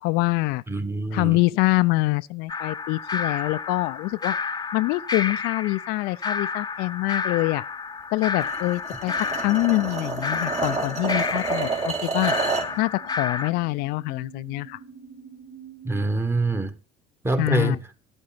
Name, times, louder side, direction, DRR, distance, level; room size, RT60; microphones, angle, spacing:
voice 1, 0.0-0.6 1.1-4.4 4.7-7.6 8.1-12.3 12.8-14.8 17.4-17.8, left 22 dB, 70° left, 0.5 m, -25 dB
voice 2, 0.7-1.4 15.8-16.8 17.2-17.8, right 2 dB, 15° right, 1.5 m, -25 dB
sound 1, 2.5-13.5, left 5 dB, 25° left, 0.9 m, -31 dB
sound 2, 7.6-16.1, right 7 dB, 70° right, 5.3 m, -50 dB
sound 3, 8.4-12.8, right 4 dB, 45° right, 2.9 m, -29 dB
10.5 x 8.7 x 5.9 m
supercardioid pair, 80°, 17 cm